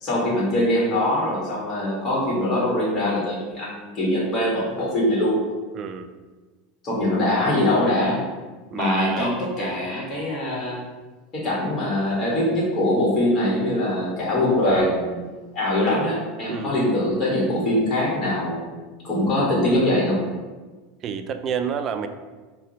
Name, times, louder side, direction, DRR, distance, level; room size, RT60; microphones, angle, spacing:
voice 1, 0.0-5.4 6.8-8.2 8.7-10.8 11.3-15.2 15.5-18.7 19.0-20.2, left 1 dB, 35° left, -5 dB, 1.3 m, -22 dB
voice 2, 5.7-6.1 8.7-9.3 9.6-9.8 16.5-16.7 21.0-22.1, right 7 dB, 40° right, 9 dB, 0.3 m, -29 dB
4.8 x 2.2 x 2.8 m, 1.3 s
hypercardioid pair, 100°, 0 cm